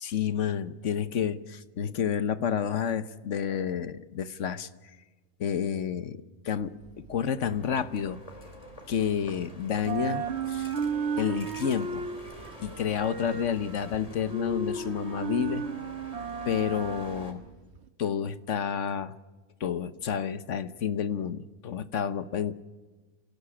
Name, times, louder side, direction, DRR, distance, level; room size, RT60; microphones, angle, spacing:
voice 1, 0.0-4.7 5.4-8.2 8.9-10.7 11.2-12.0 12.6-15.6 16.4-17.4 18.0-19.2 19.6-22.5, left 8 dB, 60° left, 14 dB, 1.2 m, -30 dB
sound 1, 6.6-9.4 9.7-17.9, right 5 dB, 50° right, 1.3 m, -35 dB
sound 2, 7.4-17.3, left 1 dB, 25° left, 3.2 m, -47 dB
26.0 x 16.5 x 8.6 m, 1.3 s
omnidirectional pair, 1.6 m